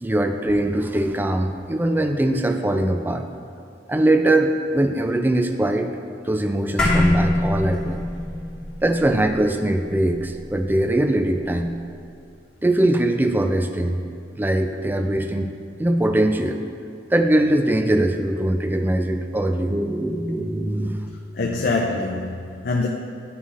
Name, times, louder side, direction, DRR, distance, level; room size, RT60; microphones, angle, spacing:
voice 1, 0.0-3.2 3.9-5.9 6.2-8.1 8.8-11.7 12.6-14.0 14.3-15.5 15.8-16.6 17.1-21.1, right 1 dB, 10° right, 6 dB, 0.3 m, -21 dB
sound 1, 6.8-11.4, left 1 dB, 5° left, 1.4 m, -24 dB
voice 2, 21.3-22.9, left 3 dB, 55° left, 0 dB, 0.4 m, -24 dB
9.5 x 5.6 x 2.5 m, 2.6 s
head